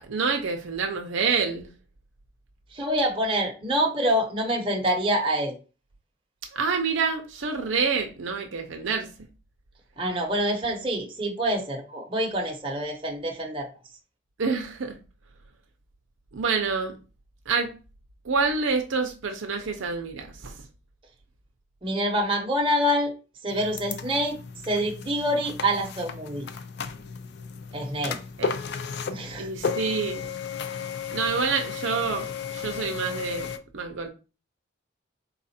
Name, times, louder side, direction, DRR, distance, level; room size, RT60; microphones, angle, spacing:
voice 1, 0.1-1.7 6.5-9.1 14.4-15.0 16.3-17.0 17.5-17.7 18.3-20.5 28.4-28.5 29.4-30.3 31.1-32.3 32.5-33.5 33.7-34.1, right 5 dB, 65° right, 0.6 m, -27 dB
voice 2, 2.7-5.6 10.0-13.7 21.8-23.1 23.4-24.4 24.6-26.5 27.7-28.2 29.1-29.5, equal, 25° right, 0.8 m, -26 dB
sound 1, 23.5-33.6, left 6 dB, 50° left, 0.4 m, -34 dB
4.1 x 2.4 x 4.2 m
head